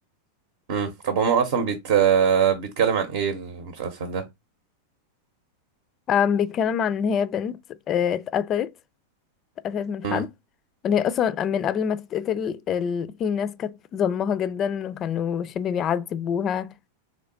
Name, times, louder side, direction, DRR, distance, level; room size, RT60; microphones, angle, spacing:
voice 1, 0.7-4.2 10.0-10.2, right 7 dB, 50° right, 0.8 m, -23 dB
voice 2, 6.1-7.6 7.9-8.7 9.6-10.3 10.8-16.7, left 8 dB, 30° left, 0.3 m, -25 dB
3.9 x 3.0 x 3.7 m
figure-of-eight pair, 90°, 0 cm